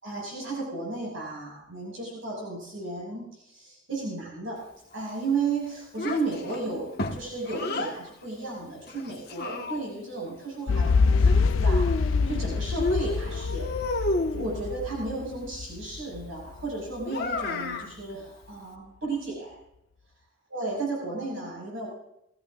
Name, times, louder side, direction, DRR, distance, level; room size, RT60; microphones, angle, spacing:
voice 1, 0.0-4.6 4.9-13.7 14.3-19.6 20.5-21.9, right 3 dB, 85° right, -2 dB, 6.0 m, -34 dB
Child speech kid speaking, 6.0-8.0 8.9-10.1 11.3-12.4 12.8-14.5 17.1-17.9, left 2 dB, 55° left, 1.4 m, -31 dB
sound 1, 10.7-16.7 17.0-17.1, left 4 dB, 85° left, 0.5 m, -25 dB
20.0 x 15.5 x 2.5 m, 0.82 s
head